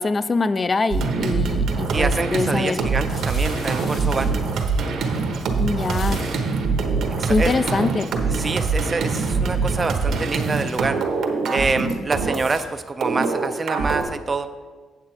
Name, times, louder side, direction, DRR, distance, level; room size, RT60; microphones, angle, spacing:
voice 1, 0.0-2.8 5.6-6.2 7.3-8.1, left 3 dB, 30° left, 14 dB, 0.4 m, -23 dB
sound 1, 0.9-12.6 13.0-14.0, right 4 dB, 70° right, 1.1 m, -24 dB
voice 2, 1.9-4.4 7.2-7.5 8.3-11.0 11.5-14.5, right 4 dB, 30° right, 9 dB, 0.4 m, -26 dB
sound 2, 2.3-2.4 2.8-6.5 7.1-7.2 7.3-8.0 8.5-8.8 9.0-10.2, left 3 dB, 70° left, 1.8 m, -42 dB
8.2 x 7.5 x 4.4 m, 1.4 s
cardioid pair, 90°, 0 cm